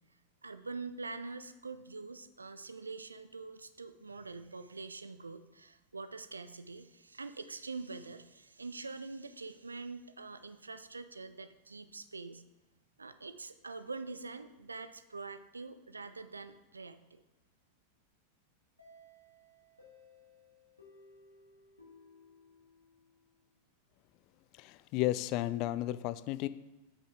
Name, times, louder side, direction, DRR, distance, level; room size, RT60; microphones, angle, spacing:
voice 1, 0.4-12.4 13.0-17.2, right 3 dB, 80° right, 12 dB, 0.4 m, -45 dB
sound 1, 18.8-23.5, left 2 dB, 85° left, 1.6 m, -60 dB
voice 2, 24.6-26.5, left 15 dB, 40° left, 15 dB, 0.3 m, -33 dB
7.9 x 6.2 x 3.7 m, 1.1 s
figure-of-eight pair, 90°, 0 cm